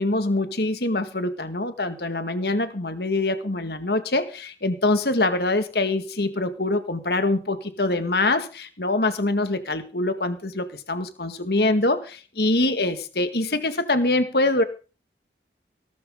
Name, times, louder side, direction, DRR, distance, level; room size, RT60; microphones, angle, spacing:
voice 1, 0.0-14.6, left 2 dB, 65° left, 9 dB, 2.0 m, -24 dB
17.5 x 14.0 x 3.8 m, 0.36 s
head